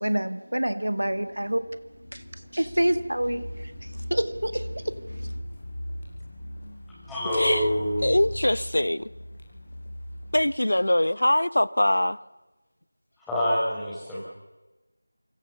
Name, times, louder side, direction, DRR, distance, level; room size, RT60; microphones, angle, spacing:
voice 1, 0.0-1.7 2.1-2.2 2.5-3.5 4.1-5.0, right 1 dB, 75° right, 2.0 m, -26 dB
Car, 1.0-10.4, equal, 40° left, 5.8 m, -39 dB
voice 2, 7.0-8.1 13.2-14.2, equal, 5° left, 4.5 m, -26 dB
voice 3, 8.0-9.1 10.3-12.2, left 1 dB, 65° left, 0.8 m, -22 dB
28.5 x 26.0 x 7.0 m
figure-of-eight pair, 170°, 0 cm